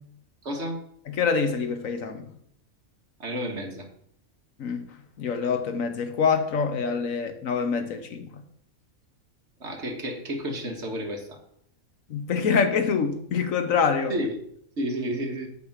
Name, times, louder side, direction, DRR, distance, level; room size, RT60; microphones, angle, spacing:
voice 1, 0.4-0.8 3.2-3.9 9.6-11.4 14.1-14.4 14.8-15.5, equal, 55° right, 1.8 m, -31 dB
voice 2, 1.1-2.3 4.6-4.9 5.2-8.4 12.1-14.1, left 6 dB, 75° left, 1.4 m, -25 dB
8.4 x 5.3 x 7.2 m
omnidirectional pair, 1.4 m